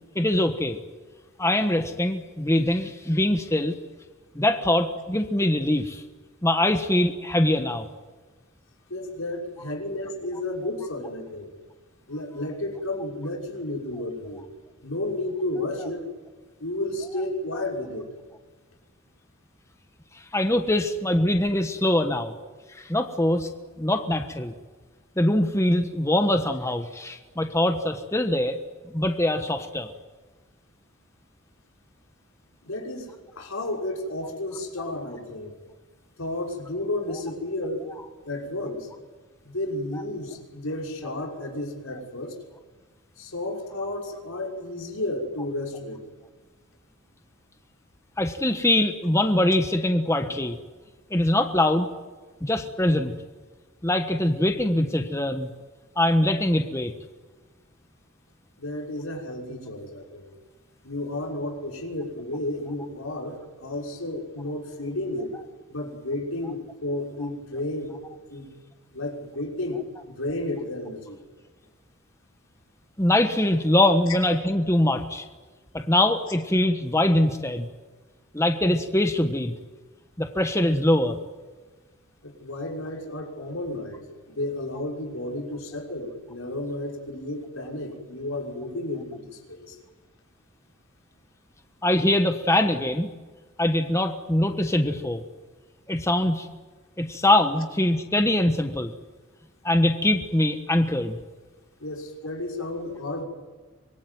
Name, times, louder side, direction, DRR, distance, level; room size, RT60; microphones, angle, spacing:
voice 1, 0.1-0.8 1.4-3.7 4.3-6.0 6.4-7.9 17.5-17.6 20.3-22.3 22.7-23.5 23.8-24.5 25.2-28.6 28.9-29.9 39.9-40.0 48.2-50.6 51.1-51.9 52.4-53.1 53.8-55.5 56.0-56.9 73.0-75.2 75.7-77.7 78.3-79.5 80.2-81.2 91.8-93.1 93.6-95.2 95.9-96.5 97.0-98.9 99.6-101.2, left 1 dB, 15° left, 6 dB, 1.3 m, -23 dB
voice 2, 8.9-11.5 12.1-14.5 14.8-16.1 16.6-18.1 32.6-35.5 36.2-37.9 38.2-38.9 39.4-42.4 43.2-46.0 58.6-60.3 60.8-65.3 65.7-67.9 68.3-68.6 68.9-69.8 70.1-71.2 82.2-89.8 101.8-103.2, left 1 dB, 85° left, 0 dB, 6.1 m, -32 dB
25.0 x 22.0 x 9.5 m, 1.3 s
head